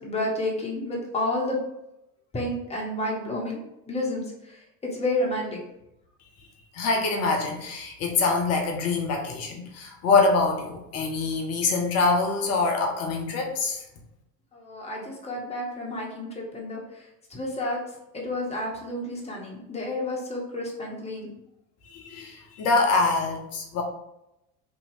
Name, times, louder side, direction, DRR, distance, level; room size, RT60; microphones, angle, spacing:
voice 1, 0.0-1.6 2.3-3.6 3.9-4.6 4.9-5.6 14.5-17.8 18.1-21.3, left 1 dB, 15° left, -2 dB, 0.8 m, -30 dB
voice 2, 6.7-13.8 21.9-23.8, left 3 dB, 35° left, 2 dB, 0.5 m, -25 dB
2.7 x 2.7 x 2.6 m, 0.87 s
figure-of-eight pair, 70°, 48 cm